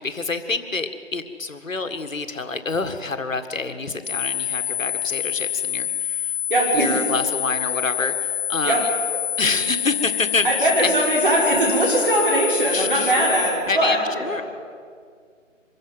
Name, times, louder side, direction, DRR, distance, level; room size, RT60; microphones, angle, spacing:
voice 1, 0.0-6.3 6.7-8.9 9.4-10.9 12.7-13.3 13.7-14.4, left 3 dB, 85° left, 9 dB, 1.9 m, -27 dB
sound 1, 4.0-13.5, left 10 dB, 60° right, 6.8 m, -26 dB
voice 2, 6.5-7.1 8.6-8.8 10.4-14.4, right 1 dB, 40° right, -2 dB, 6.2 m, -21 dB
24.0 x 14.5 x 9.3 m, 2.1 s
figure-of-eight pair, 170°, 38 cm